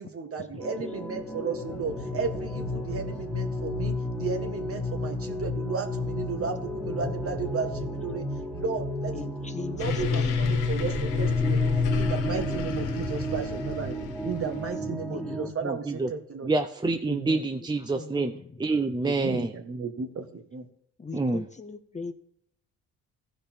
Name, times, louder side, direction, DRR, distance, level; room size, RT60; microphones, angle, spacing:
voice 1, 0.0-8.2 8.5-9.1 9.7-13.9 14.2-16.5 17.1-17.4 19.0-20.7, right 5 dB, 50° right, 1.7 m, -34 dB
sound 1, 0.6-15.5, left 1 dB, 5° left, 1.8 m, -33 dB
voice 2, 9.1-10.4 14.7-15.4 17.9-18.6 21.0-22.1, left 4 dB, 25° left, 0.8 m, -39 dB
sound 2, 9.8-14.7, left 5 dB, 85° left, 1.4 m, -28 dB
voice 3, 15.6-16.1 16.4-18.3 18.6-19.5 21.1-21.4, right 3 dB, 15° right, 0.6 m, -27 dB
15.0 x 5.1 x 4.5 m
cardioid pair, 90°, 30 cm